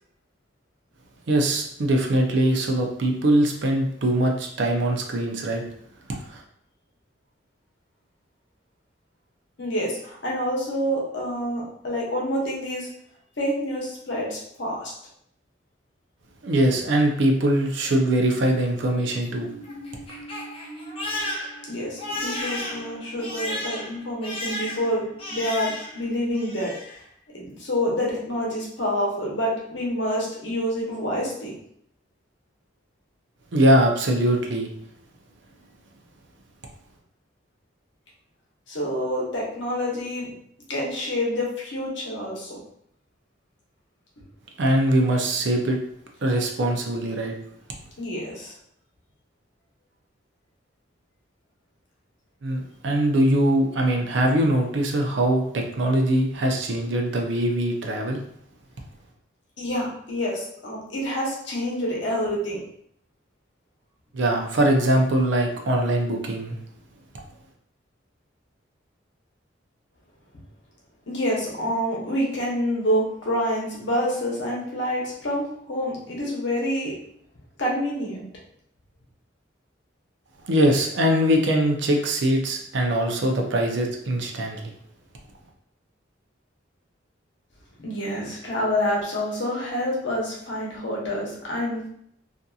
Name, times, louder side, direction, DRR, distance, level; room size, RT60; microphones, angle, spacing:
voice 1, 1.3-5.6 6.3-6.4 16.4-19.5 33.5-34.7 44.6-45.8 46.2-47.3 52.4-58.2 64.1-66.6 80.5-84.7, right 1 dB, 65° right, 2 dB, 0.5 m, -22 dB
voice 2, 9.6-12.9 13.4-14.9 21.7-25.0 25.3-26.7 27.3-31.5 38.7-40.3 40.7-42.6 48.0-48.5 59.6-62.6 71.1-76.9 77.6-78.2 87.8-91.9, equal, 65° left, -4 dB, 0.9 m, -27 dB
Crying sobbing, 19.2-26.1 26.3-27.0, left 1 dB, 30° left, 0.5 m, -34 dB
2.7 x 2.5 x 2.3 m, 0.69 s
head